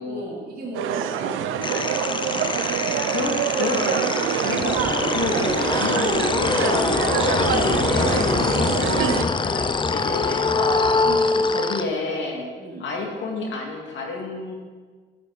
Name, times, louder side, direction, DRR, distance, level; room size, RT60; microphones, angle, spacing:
voice 1, 0.1-2.5 5.0-5.5 11.0-11.5 12.6-12.9, right 1 dB, 50° right, -3 dB, 3.0 m, -36 dB
sound 1, 0.7-9.2, right 9 dB, 85° right, 0.6 m, -25 dB
sound 2, 1.6-11.8, left 4 dB, 25° left, 0.5 m, -24 dB
voice 2, 3.1-11.0 11.5-12.5 12.8-14.5, left 3 dB, 70° left, 0 dB, 2.1 m, -30 dB
11.0 x 7.4 x 4.0 m, 1.5 s
cardioid pair, 90°, 20 cm